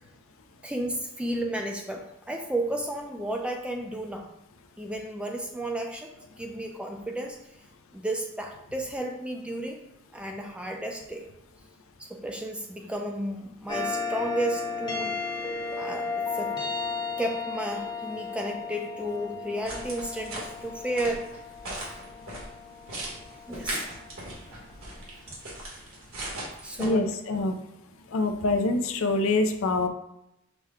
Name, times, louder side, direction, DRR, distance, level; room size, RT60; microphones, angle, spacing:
voice 1, 0.6-4.3 4.8-6.1 6.4-7.4 7.9-9.8 10.1-11.3 12.0-15.1 15.8-16.5 17.2-21.2 21.8-21.9 23.5-23.9 26.6-27.0, right 1 dB, 5° right, 2 dB, 0.3 m, -33 dB
Ave maria (Maas-Rowe Digital Carillon Player), 13.7-24.4, left 4 dB, 20° left, 0.8 m, -34 dB
sound 1, 19.7-26.9, right 1 dB, 75° right, 1.3 m, -39 dB
voice 2, 26.8-27.5 28.1-29.9, left 2 dB, 75° left, 7 dB, 0.4 m, -25 dB
5.9 x 2.2 x 3.5 m, 0.82 s
head